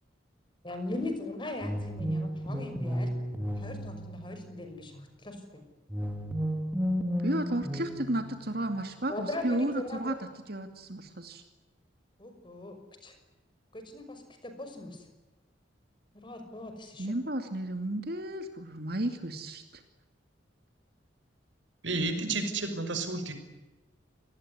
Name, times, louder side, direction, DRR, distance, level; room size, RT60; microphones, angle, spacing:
voice 1, 0.6-3.1 3.6-5.6 9.1-10.2 12.2-12.8 13.0-13.2 13.7-15.0 16.1-17.2, left 2 dB, 25° left, 7 dB, 5.9 m, -39 dB
sound 1, 1.6-4.7 5.9-8.8, equal, 10° right, 2.6 m, -33 dB
voice 2, 7.2-10.1 10.5-11.4 17.0-19.8, right 1 dB, 55° right, 7 dB, 2.5 m, -33 dB
voice 3, 21.8-23.3, right 3 dB, 80° right, 8 dB, 5.6 m, -31 dB
28.0 x 20.0 x 9.6 m, 1.1 s
head